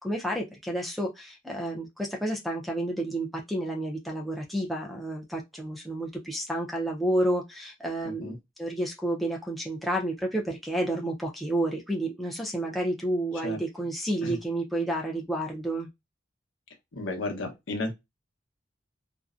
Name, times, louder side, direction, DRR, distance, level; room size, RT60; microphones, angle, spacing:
voice 1, 0.0-15.9, right 1 dB, ahead, 0.4 m, -30 dB
voice 2, 8.0-8.4 13.4-13.6 14.2-14.4 16.9-17.9, left 2 dB, 80° left, 0.8 m, -33 dB
2.6 x 2.1 x 2.4 m
head